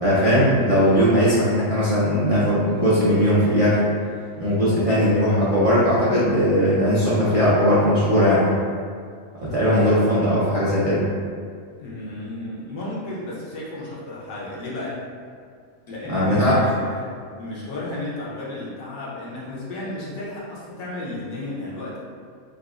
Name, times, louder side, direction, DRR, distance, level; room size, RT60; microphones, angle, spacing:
voice 1, 0.0-3.8 4.4-8.4 9.4-11.0 16.1-16.7, equal, 55° right, -10 dB, 0.4 m, -19 dB
voice 2, 9.5-10.2 11.8-15.0 15.9-17.1 17.4-22.0, left 2 dB, 80° left, -6 dB, 1.2 m, -33 dB
4.9 x 2.0 x 2.4 m, 2.1 s
omnidirectional pair, 1.4 m